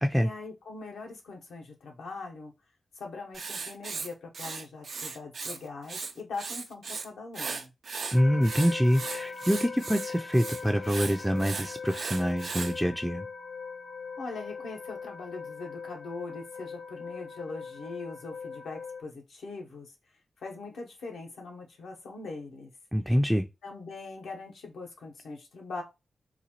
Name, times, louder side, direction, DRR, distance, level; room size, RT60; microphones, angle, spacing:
voice 1, 0.2-2.5 2.9-7.7 14.2-19.9 20.4-22.7 23.6-25.8, left 3 dB, 90° left, 0.9 m, -41 dB
Writing, 3.3-5.6 5.8-7.1 7.3-12.7, right 4 dB, 70° right, 0.5 m, -37 dB
sound 1, 8.1-19.0, left 5 dB, 60° left, 0.5 m, -40 dB
voice 2, 8.1-13.3 22.9-23.4, equal, ahead, 0.4 m, -25 dB
4.0 x 2.3 x 2.9 m
cardioid pair, 50°, 0 cm